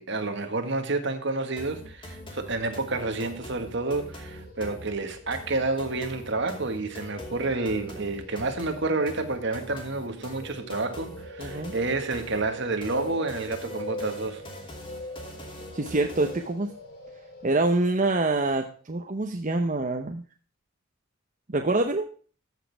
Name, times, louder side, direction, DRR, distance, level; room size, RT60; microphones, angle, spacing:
voice 1, 0.0-14.4, right 3 dB, 60° right, 1.7 m, -29 dB
sound 1, 1.6-16.6, left 1 dB, 25° left, 2.7 m, -44 dB
sound 2, 1.7-18.7, left 1 dB, 50° left, 3.5 m, -44 dB
voice 2, 11.4-11.7 15.7-16.7 17.4-20.2 21.5-22.1, right 2 dB, 40° right, 0.8 m, -26 dB
14.0 x 6.4 x 3.4 m
head